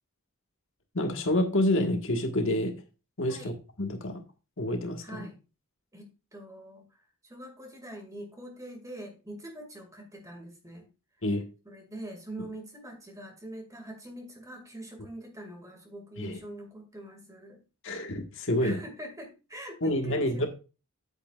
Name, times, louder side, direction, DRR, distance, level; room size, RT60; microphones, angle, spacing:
voice 1, 0.9-2.7 3.2-3.5 3.8-4.2 4.6-5.3 11.2-11.5 16.2-16.4 17.8-18.8 19.8-20.5, left 1 dB, 60° left, 4 dB, 1.5 m, -28 dB
voice 2, 5.0-5.4 5.9-6.8 7.2-10.9 11.7-17.6 18.6-20.5, right 1 dB, 15° right, 4 dB, 2.1 m, -44 dB
8.8 x 8.8 x 2.4 m, 0.30 s
head